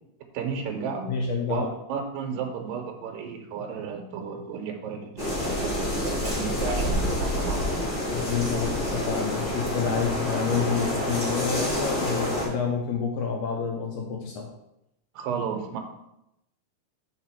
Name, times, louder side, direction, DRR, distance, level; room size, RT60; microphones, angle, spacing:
voice 1, 0.3-1.1 1.5-7.9 15.1-15.8, right 6 dB, 80° right, 3 dB, 2.5 m, -33 dB
voice 2, 1.1-1.7 8.1-14.5, left 6 dB, 75° left, 1 dB, 2.0 m, -28 dB
sound 1, 5.2-12.5, left 1 dB, 25° left, 1.9 m, -28 dB
4.9 x 4.7 x 5.7 m, 0.85 s
omnidirectional pair, 4.0 m